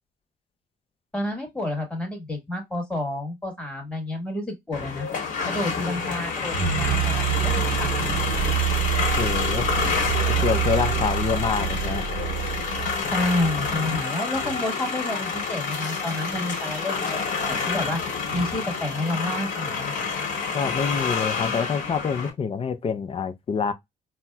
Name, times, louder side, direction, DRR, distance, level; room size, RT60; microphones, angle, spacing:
voice 1, 1.1-5.1 5.5-7.6 13.1-17.2 17.4-18.0 18.3-20.1, left 1 dB, 5° left, 1.6 m, -29 dB
sound 1, 4.7-22.3, left 5 dB, 50° left, 1.3 m, -28 dB
sound 2, 6.5-13.7, right 11 dB, 55° right, 0.8 m, -27 dB
voice 2, 9.2-9.7 10.3-12.1 20.5-23.7, left 6 dB, 35° left, 0.5 m, -26 dB
4.1 x 2.0 x 2.2 m
cardioid pair, 110°, 17 cm